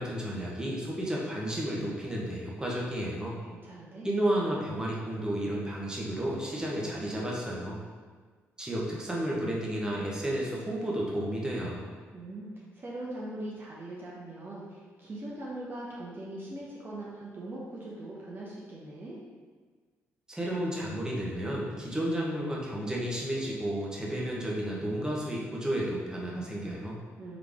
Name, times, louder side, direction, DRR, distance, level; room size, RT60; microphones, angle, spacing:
voice 1, 0.0-3.4 4.0-7.8 8.6-11.9 20.3-27.0, right 1 dB, 10° right, -4 dB, 1.2 m, -32 dB
voice 2, 3.5-4.1 12.1-19.2 27.2-27.4, right 1 dB, 35° right, -5 dB, 0.9 m, -41 dB
4.0 x 3.2 x 3.6 m, 1.5 s
supercardioid pair, 55°, 6 cm